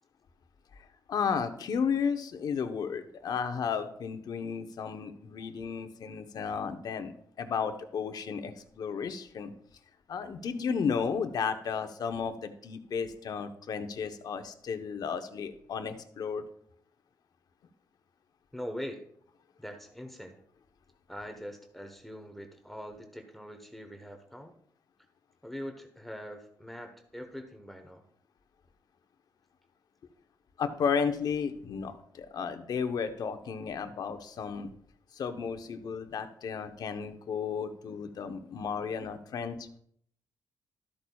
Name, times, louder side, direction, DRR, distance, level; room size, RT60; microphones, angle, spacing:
voice 1, 1.1-9.5 10.1-16.4 30.6-34.7 35.1-39.7, left 6 dB, 65° left, 8 dB, 0.9 m, -33 dB
voice 2, 18.5-19.0 19.6-20.4 21.1-24.5 25.4-28.1, equal, ahead, 4 dB, 1.0 m, -42 dB
12.5 x 8.5 x 2.3 m, 0.65 s
cardioid pair, 95°, 7 cm